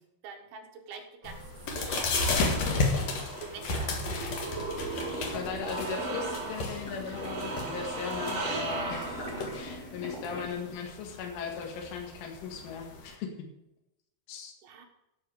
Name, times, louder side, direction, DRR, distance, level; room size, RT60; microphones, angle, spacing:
voice 1, 0.2-1.4 1.8-2.3 3.2-4.4 14.6-14.9, right 5 dB, 75° right, 3 dB, 3.7 m, -45 dB
sound 1, 1.2-13.1, left 3 dB, 55° left, 1.9 m, -34 dB
sound 2, 1.2-9.8, right 3 dB, 55° right, 5.2 m, -38 dB
sound 3, 4.8-10.5, equal, 25° left, 2.8 m, -42 dB
voice 2, 5.3-13.5 14.3-14.5, left 6 dB, 80° left, 2 dB, 4.3 m, -38 dB
12.0 x 5.7 x 7.9 m, 0.89 s
omnidirectional pair, 5.5 m